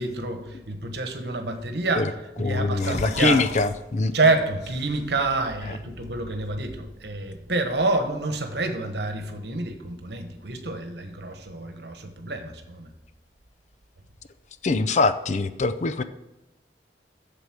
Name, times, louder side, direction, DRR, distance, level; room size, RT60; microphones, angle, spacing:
voice 1, 0.0-3.5 4.1-12.9, right 2 dB, 65° right, 6 dB, 1.2 m, -28 dB
voice 2, 2.4-4.1 5.7-5.8 14.6-16.0, left 3 dB, 40° left, 12 dB, 0.5 m, -23 dB
sound 1, 2.5-3.7 4.1-4.2 4.6-5.3, left 3 dB, 65° left, 1.2 m, -39 dB
8.0 x 6.8 x 6.0 m, 0.96 s
head